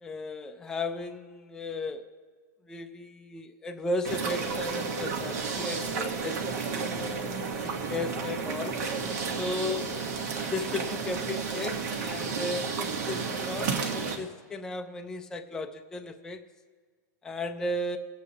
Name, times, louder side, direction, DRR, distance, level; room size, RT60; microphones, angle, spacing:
voice 1, 0.0-2.0 2.7-6.5 7.6-8.8 9.3-9.9 10.5-16.4 17.2-18.0, left 2 dB, 5° left, 5 dB, 0.4 m, -35 dB
sound 1, 4.0-14.2, right 5 dB, 65° right, 1.4 m, -32 dB
21.0 x 8.1 x 2.8 m, 1.5 s
supercardioid pair, 165°, 10 cm